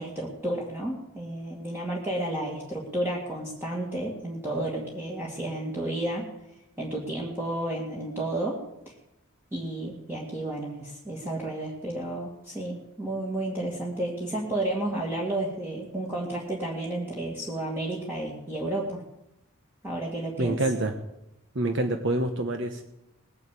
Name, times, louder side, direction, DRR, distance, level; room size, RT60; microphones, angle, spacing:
voice 1, 0.0-6.3 6.8-8.6 9.5-19.0 19.8-20.6, right 1 dB, 10° right, -4 dB, 2.1 m, -32 dB
voice 2, 20.4-20.9 21.5-22.8, right 2 dB, 55° right, 6 dB, 1.0 m, -26 dB
20.0 x 7.0 x 8.4 m, 0.88 s
head